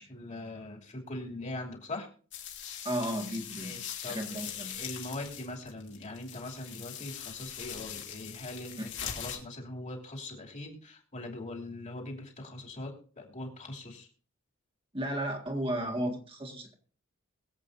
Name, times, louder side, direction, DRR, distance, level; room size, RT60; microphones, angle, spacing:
voice 1, 0.0-2.1 3.6-14.1, left 2 dB, 35° left, 0 dB, 2.9 m, -41 dB
sound 1, 2.3-9.4, left 9 dB, 60° left, 2.8 m, -41 dB
voice 2, 2.8-3.8 4.1-4.7 8.8-8.9 14.9-16.7, right 1 dB, 25° right, 1 dB, 1.8 m, -34 dB
22.5 x 8.1 x 2.7 m, 0.41 s
head